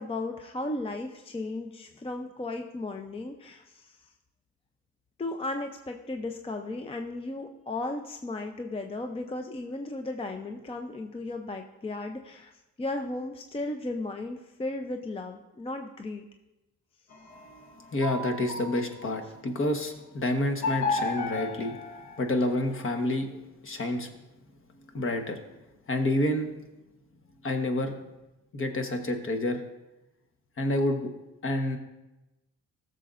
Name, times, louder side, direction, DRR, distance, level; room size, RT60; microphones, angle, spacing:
voice 1, 0.0-4.1 5.2-16.3, left 2 dB, 20° left, 5 dB, 0.5 m, -35 dB
sound 1, 17.1-19.4 20.6-22.9, left 3 dB, 70° left, 1.3 m, -34 dB
voice 2, 17.9-21.8 22.2-24.1 24.9-25.4 25.9-26.5 27.4-28.0 28.5-29.6 30.6-31.1 31.4-31.8, left 1 dB, 45° left, 5 dB, 1.2 m, -28 dB
15.0 x 6.8 x 2.5 m, 0.99 s
cardioid pair, 90°, 30 cm